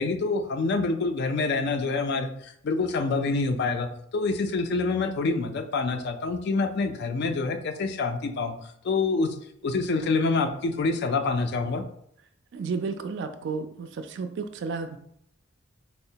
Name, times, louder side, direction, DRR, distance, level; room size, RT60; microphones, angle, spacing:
voice 1, 0.0-8.6 8.8-9.3 9.6-11.8, left 3 dB, 55° left, 7 dB, 0.3 m, -26 dB
voice 2, 12.5-15.0, right 4 dB, 60° right, 9 dB, 0.3 m, -32 dB
4.2 x 2.0 x 2.7 m, 0.71 s
head